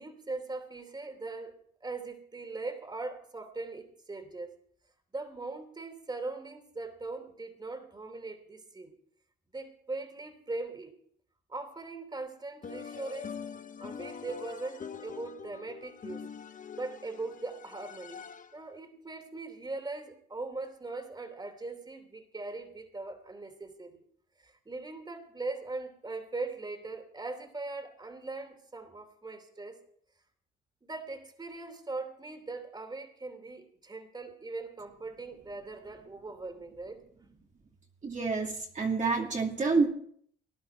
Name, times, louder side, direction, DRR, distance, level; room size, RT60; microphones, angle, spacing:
voice 1, 0.0-1.5 1.8-4.5 5.1-8.9 9.5-10.9 11.5-13.3 13.8-16.3 16.8-18.3 18.5-24.1 24.4-29.8 30.8-37.0, right 3 dB, 20° right, 7 dB, 3.0 m, -40 dB
sound 1, 12.6-18.7, left 6 dB, 40° left, 1.0 m, -44 dB
voice 2, 38.0-39.9, right 4 dB, 40° right, 0 dB, 2.6 m, -28 dB
19.5 x 11.0 x 4.6 m, 0.63 s
cardioid pair, 90°, 20 cm